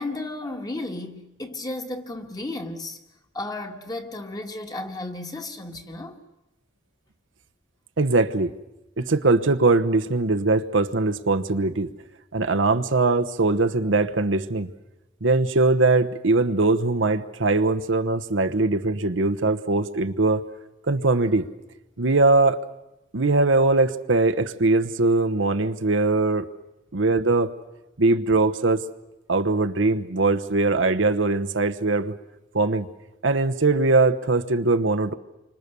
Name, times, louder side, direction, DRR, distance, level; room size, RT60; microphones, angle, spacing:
voice 1, 0.0-3.0 3.3-6.2, left 2 dB, 20° left, 1.8 m, -33 dB
voice 2, 8.0-8.5 9.0-11.9 12.3-14.7 15.2-20.4 20.9-21.5 22.0-22.6 23.1-26.5 26.9-27.5 28.0-28.8 29.3-32.1 32.5-32.9 33.2-35.1, right 3 dB, 80° right, 1.1 m, -21 dB
29.0 x 25.5 x 6.9 m
head